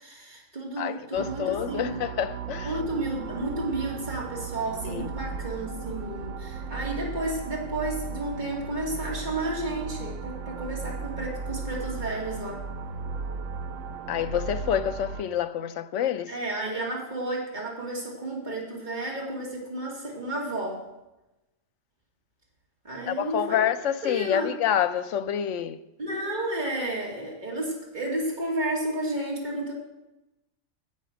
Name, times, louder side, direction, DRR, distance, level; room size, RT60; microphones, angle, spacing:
voice 1, 0.0-2.0 2.6-12.6 16.3-20.8 22.8-23.6 24.0-24.5 26.0-29.7, right 1 dB, 35° right, 2.7 m, -32 dB
voice 2, 0.8-2.8 4.8-5.1 14.1-16.3 23.1-25.8, left 9 dB, 75° left, 0.9 m, -27 dB
sound 1, 1.1-15.2, right 5 dB, 75° right, 1.0 m, -36 dB
9.9 x 7.8 x 6.2 m
omnidirectional pair, 1.3 m